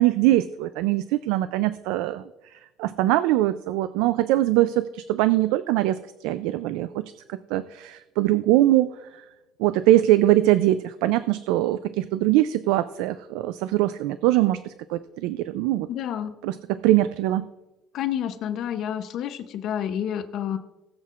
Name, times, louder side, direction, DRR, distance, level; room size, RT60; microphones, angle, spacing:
voice 1, 0.0-2.2 2.8-7.0 7.5-8.9 9.6-15.9 16.4-16.6 16.8-17.5, right 15 dB, 90° right, 13 dB, 0.3 m, -22 dB
voice 2, 15.9-16.3 17.9-20.6, left 9 dB, 55° left, 9 dB, 0.7 m, -29 dB
19.5 x 7.4 x 2.5 m, 1.0 s
cardioid pair, 140°, 0 cm